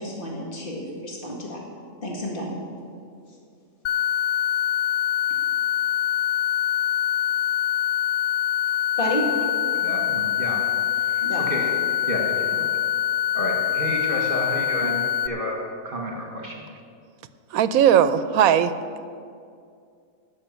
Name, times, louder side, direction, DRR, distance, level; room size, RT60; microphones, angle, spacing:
voice 1, 0.0-1.6 2.0-2.5 9.0-9.3 11.2-11.6, equal, 40° left, -2 dB, 2.2 m, -30 dB
sound 1, 3.8-15.3, left 10 dB, 75° left, 0.4 m, -24 dB
voice 2, 9.7-10.6 11.5-11.7 12.1-12.7 13.3-15.0 15.2-15.6 15.8-16.5, equal, 40° right, -1 dB, 1.9 m, -30 dB
voice 3, 17.5-18.7, right 9 dB, 85° right, 13 dB, 1.1 m, -18 dB
13.5 x 6.4 x 8.7 m, 2.4 s
omnidirectional pair, 1.5 m